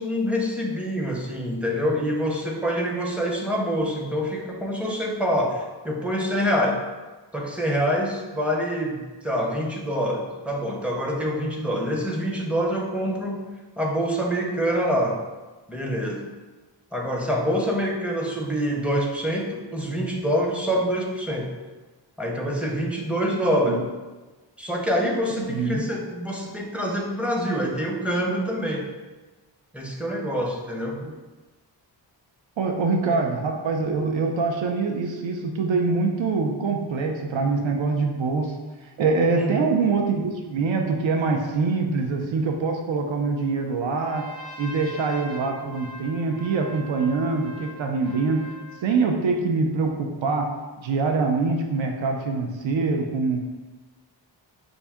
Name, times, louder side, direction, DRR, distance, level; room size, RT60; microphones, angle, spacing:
voice 1, 0.0-6.8 7.3-13.4 13.8-15.2 15.7-16.2 16.9-21.5 22.2-23.9 24.6-28.9 29.7-31.0 39.3-39.7, equal, 5° right, -2 dB, 0.5 m, -26 dB
voice 2, 25.5-25.8 31.0-31.1 32.6-38.6 39.0-44.2 44.6-48.5 48.8-53.4, right 4 dB, 85° right, 2 dB, 0.6 m, -24 dB
Trumpet, 43.8-48.9, equal, 55° right, 0.8 m, -42 dB
5.5 x 2.6 x 3.5 m, 1.2 s
wide cardioid pair, 175°, 45 cm